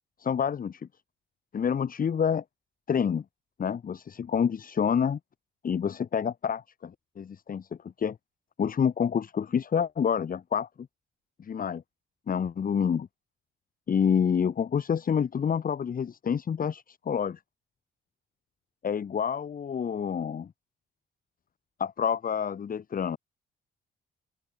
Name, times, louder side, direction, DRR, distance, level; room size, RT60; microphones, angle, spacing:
voice 1, 0.2-0.9 1.5-2.4 2.9-3.2 3.6-5.2 5.6-7.7 8.0-8.2 8.6-10.9 11.4-11.8 12.3-13.1 13.9-17.4 18.8-20.5 21.8-23.2, left 7 dB, 45° left, 1.9 m, -28 dB
open air
cardioid pair, 90°, 20 cm